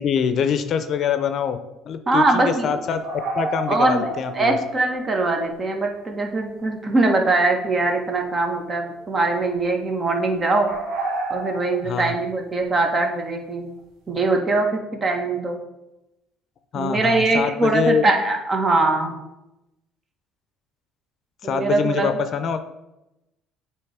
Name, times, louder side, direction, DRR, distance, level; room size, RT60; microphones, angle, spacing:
voice 1, 0.0-1.6 1.9-3.0 3.3-4.6 11.8-12.1 16.7-18.1 21.4-22.6, left 7 dB, 55° left, 10 dB, 0.6 m, -24 dB
voice 2, 2.1-2.7 3.7-4.1 4.3-10.7 11.3-13.7 14.1-15.6 16.7-19.2 21.4-22.2, right 2 dB, 30° right, 3 dB, 1.3 m, -22 dB
sound 1, 3.0-4.8 5.0-5.1 7.7-8.3 8.7-9.0 10.6-12.0, right 2 dB, 80° right, 1.6 m, -30 dB
7.7 x 3.1 x 4.9 m, 0.93 s
supercardioid pair, 80°, 0 cm